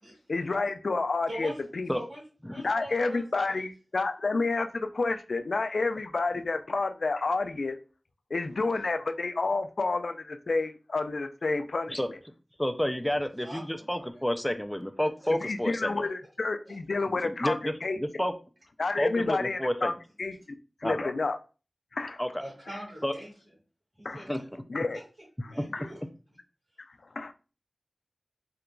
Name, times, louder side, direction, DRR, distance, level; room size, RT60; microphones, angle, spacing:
voice 1, 0.3-1.9 2.6-7.8 8.3-12.0 15.3-18.0 18.8-19.9 20.2-20.4 20.8-21.4 21.9-22.2 22.7-22.8 24.0-24.2 24.7-25.0 25.7-25.9 27.2-27.3, left 3 dB, 85° left, 0.3 m, -29 dB
voice 2, 1.3-1.6 1.9-3.6 13.0-13.1 13.4-14.2 16.7-16.8 22.4-23.3 24.0-24.3 25.4-26.0, right 1 dB, 70° right, 1.6 m, -43 dB
voice 3, 12.6-16.0 17.1-18.3 19.0-19.9 20.8-21.1 22.2-22.4 23.0-23.1 24.3-24.4 25.6-25.7, equal, 5° left, 0.4 m, -30 dB
3.7 x 2.8 x 2.2 m
wide cardioid pair, 70°, 0 cm